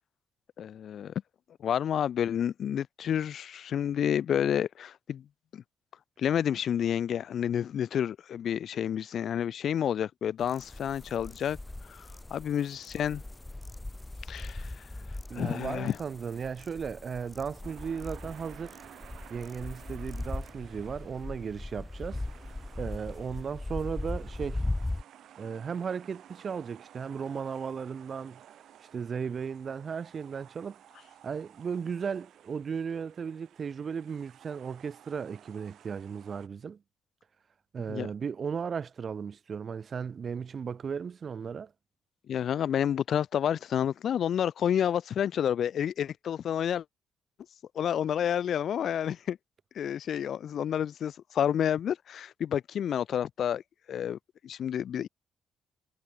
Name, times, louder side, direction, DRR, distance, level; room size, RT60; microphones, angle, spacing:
voice 1, 0.6-1.1 1.6-5.2 5.5-5.6 6.2-11.6 11.9-13.2 14.3-14.7 15.3-16.0 37.9-38.1 42.3-46.8 47.8-49.4 49.8-53.6 53.9-54.2 54.4-55.1, left 9 dB, 65° left, 0.5 m, -29 dB
sound 1, 10.4-25.0, left 2 dB, 15° left, 3.1 m, -39 dB
voice 2, 15.3-18.8 19.3-22.2 22.8-24.6 25.4-28.4 28.9-30.8 31.2-36.8 37.7-41.7, right 6 dB, 45° right, 1.5 m, -36 dB
sound 2, 17.6-36.5, right 11 dB, 70° right, 4.6 m, -55 dB
cardioid pair, 90°, 0 cm